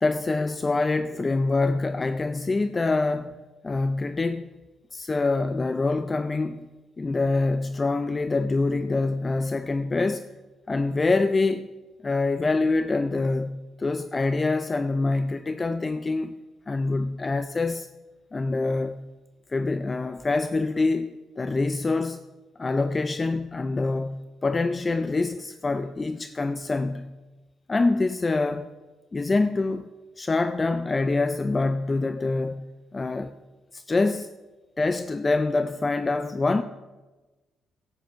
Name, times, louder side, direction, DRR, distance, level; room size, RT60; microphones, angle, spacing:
voice 1, 0.0-4.5 4.9-6.7 7.0-10.3 10.7-11.7 12.0-16.4 16.7-17.9 18.3-19.0 19.5-22.2 22.6-27.1 27.7-28.7 29.1-29.9 30.2-32.6 32.9-33.3 33.7-34.3 34.8-36.6, left 3 dB, 25° left, 0.4 m, -25 dB
11.5 x 8.3 x 6.2 m
cardioid pair, 90°, 0 cm